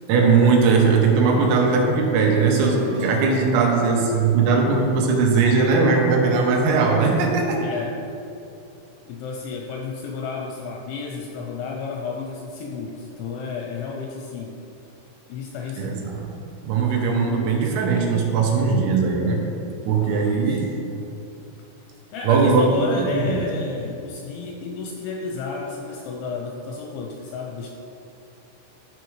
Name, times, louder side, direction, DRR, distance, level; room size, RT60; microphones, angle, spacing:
voice 1, 0.1-7.6 15.8-16.2 16.6-19.5 19.9-20.7 20.9-21.0 22.2-23.5, right 4 dB, 85° right, 0 dB, 3.6 m, -19 dB
sound 1, 2.7-7.4, right 1 dB, 65° right, 2.1 m, -40 dB
voice 2, 7.6-8.0 9.1-14.6 15.3-16.1 19.9-20.6 22.1-27.7, left 5 dB, 85° left, 1 dB, 2.7 m, -32 dB
13.5 x 4.6 x 3.2 m, 2.7 s
omnidirectional pair, 5.9 m